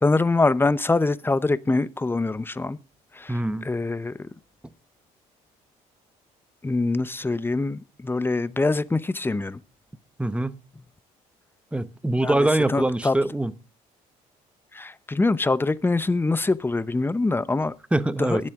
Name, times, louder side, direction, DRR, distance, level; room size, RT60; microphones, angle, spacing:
voice 1, 0.0-2.8 3.1-4.3 6.6-9.6 12.2-13.2 14.7-17.7 18.2-18.5, left 3 dB, 15° left, 0.7 m, -24 dB
voice 2, 3.3-3.7 10.2-10.6 11.7-13.5 17.9-18.4, right 1 dB, 5° right, 1.0 m, -23 dB
21.5 x 7.5 x 3.6 m
supercardioid pair, 80°, 15 cm